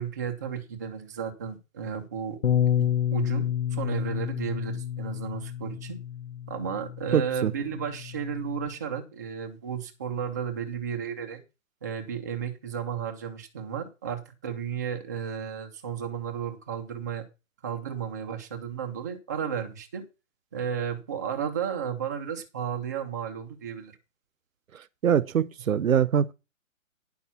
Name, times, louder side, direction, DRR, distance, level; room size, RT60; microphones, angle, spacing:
voice 1, 0.0-2.4 2.8-6.0 6.5-11.4 11.8-17.2 17.6-20.0 20.5-23.9, right 7 dB, 15° right, 0.7 m, -33 dB
Bass guitar, 2.4-8.7, left 10 dB, 55° left, 1.3 m, -30 dB
voice 2, 7.1-7.5 25.0-26.3, right 8 dB, 80° right, 0.9 m, -23 dB
10.5 x 6.0 x 5.7 m
hypercardioid pair, 170°, 40 cm